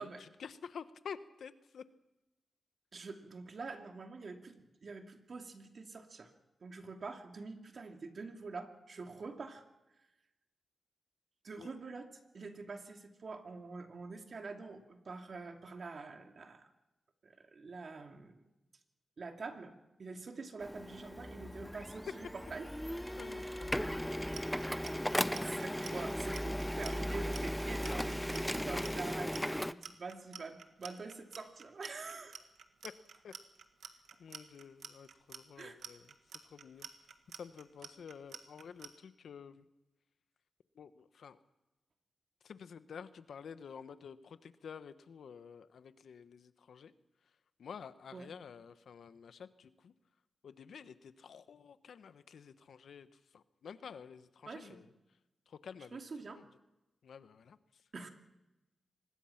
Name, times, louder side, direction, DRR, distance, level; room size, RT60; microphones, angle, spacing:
voice 1, 0.0-1.9 11.6-11.7 23.2-24.1 32.8-33.0 33.2-33.3 34.2-36.1 36.4-39.7 40.7-41.4 42.4-46.9 47.6-49.9 50.4-54.9 55.5-56.0 56.3-56.5 57.0-57.8, left 6 dB, 80° left, 12 dB, 1.1 m, -50 dB
voice 2, 2.9-4.6 4.8-6.3 6.6-9.6 11.4-12.1 12.3-16.7 17.2-18.4 19.2-22.7 25.4-32.4 35.6-35.8 48.1-48.3 54.5-54.8 55.9-56.4 57.9-58.1, right 4 dB, 60° right, 4 dB, 2.7 m, -46 dB
Printer, 20.6-29.7, equal, 5° left, 0.7 m, -37 dB
Clock, 24.1-38.9, right 7 dB, 85° right, 1.7 m, -49 dB
25.0 x 20.5 x 5.9 m, 0.99 s
cardioid pair, 60°, 0 cm